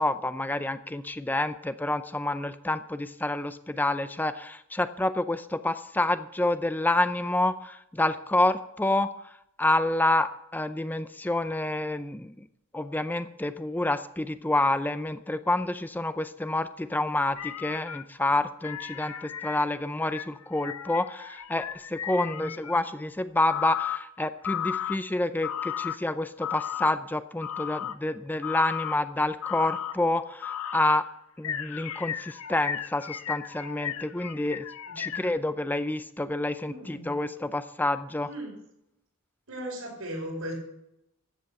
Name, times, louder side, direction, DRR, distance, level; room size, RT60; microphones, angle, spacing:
voice 1, 0.0-12.5 12.7-31.0 31.4-34.6 35.0-38.3, left 2 dB, 10° left, 11 dB, 0.4 m, -28 dB
sound 1, 17.4-18.0 18.6-22.8 23.5-24.0 24.4-25.0 25.4-26.0 26.4-27.0 27.4-27.9 28.4-29.0 29.4-30.0 30.4-31.0 31.4-35.3, left 9 dB, 90° left, 0.7 m, -35 dB
voice 2, 36.7-37.2 38.2-38.6 39.5-40.5, equal, 85° right, -1 dB, 5.9 m, -37 dB
14.0 x 7.9 x 6.9 m, 0.79 s
head